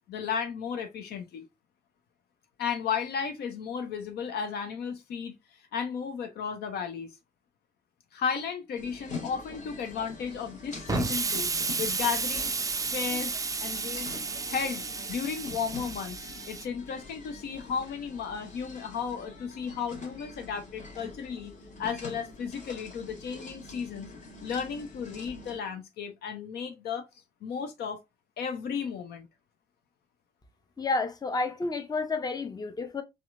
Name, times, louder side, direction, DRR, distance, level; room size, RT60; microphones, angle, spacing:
voice 1, 0.1-1.5 2.6-5.3 5.7-7.1 8.1-11.5 11.8-12.5 12.9-14.2 14.5-21.5 21.8-24.1 24.4-27.1 27.4-28.0 28.4-29.3, left 6 dB, 55° left, 0.6 m, -34 dB
sound 1, 8.8-25.6, left 3 dB, 40° left, 1.3 m, -44 dB
Explosion, 10.9-16.7, right 4 dB, 20° right, 0.4 m, -32 dB
voice 2, 30.8-33.0, left 3 dB, 20° left, 0.7 m, -30 dB
4.2 x 2.3 x 2.4 m
figure-of-eight pair, 45°, 20 cm